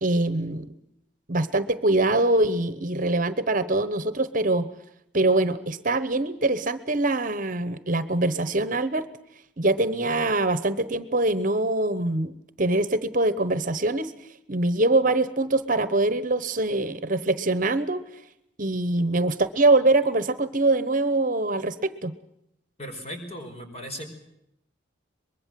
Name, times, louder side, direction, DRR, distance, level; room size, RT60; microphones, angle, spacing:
voice 1, 0.0-0.7 1.3-4.7 5.1-9.1 9.6-14.1 14.5-18.0 18.6-22.1, right 2 dB, 45° right, 14 dB, 1.1 m, -23 dB
voice 2, 22.8-24.0, equal, 35° left, 5 dB, 5.0 m, -37 dB
24.0 x 21.5 x 7.6 m, 0.80 s
head